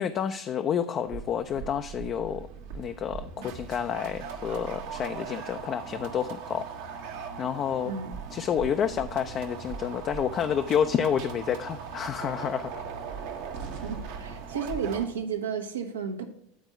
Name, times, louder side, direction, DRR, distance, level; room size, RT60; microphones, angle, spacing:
voice 1, 0.0-2.5 2.7-6.7 7.4-7.9 8.3-12.8 13.6-13.9, left 8 dB, 35° left, 8 dB, 0.4 m, -29 dB
sound 1, 1.1-15.0, right 6 dB, 60° right, 1.0 m, -39 dB
voice 2, 13.8-16.3, right 6 dB, 75° right, 6 dB, 0.9 m, -32 dB
9.3 x 4.4 x 5.8 m, 0.77 s
figure-of-eight pair, 75°, 0 cm